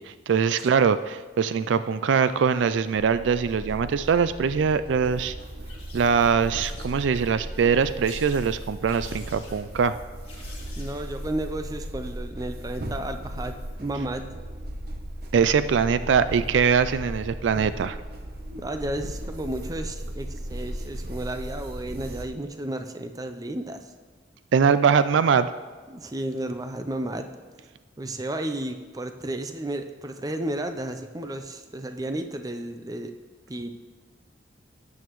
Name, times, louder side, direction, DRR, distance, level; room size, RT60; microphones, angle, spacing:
voice 1, 0.0-5.4 5.9-10.0 15.3-18.0 24.5-25.5, right 6 dB, 70° right, 13 dB, 0.3 m, -22 dB
sound 1, 2.9-22.2, right 1 dB, 55° right, 0.8 m, -37 dB
sound 2, 5.4-6.2 6.5-7.4 8.0-8.5 8.9-9.6 10.2-11.3 12.6-12.8, left 3 dB, 30° left, 1.9 m, -48 dB
voice 2, 10.8-14.3 18.6-23.9 25.9-27.3 28.0-33.1 33.5-33.7, right 1 dB, 20° right, 8 dB, 0.5 m, -33 dB
12.5 x 8.6 x 3.1 m, 1.5 s
head